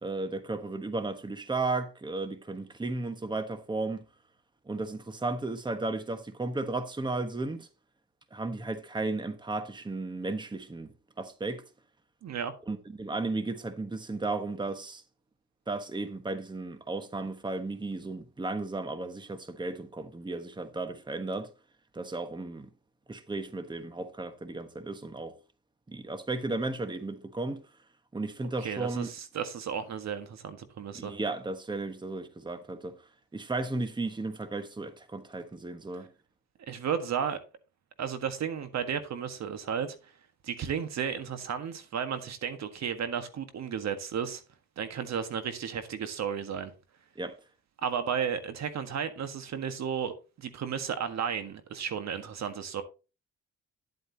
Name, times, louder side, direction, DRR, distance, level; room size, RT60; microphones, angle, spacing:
voice 1, 0.0-4.1 4.7-7.7 8.3-10.9 11.2-11.6 12.7-15.0 15.7-21.5 21.9-22.7 23.1-25.4 25.9-27.6 28.1-29.1 30.9-32.9 33.3-36.1 47.2-47.4, right 3 dB, 15° right, 1.3 m, -34 dB
voice 2, 12.2-12.5 28.6-31.1 36.6-37.4 38.0-40.0 40.4-44.4 44.8-46.7 47.8-52.8, right 7 dB, 60° right, 1.6 m, -33 dB
10.5 x 8.2 x 2.9 m
cardioid pair, 90°, 30 cm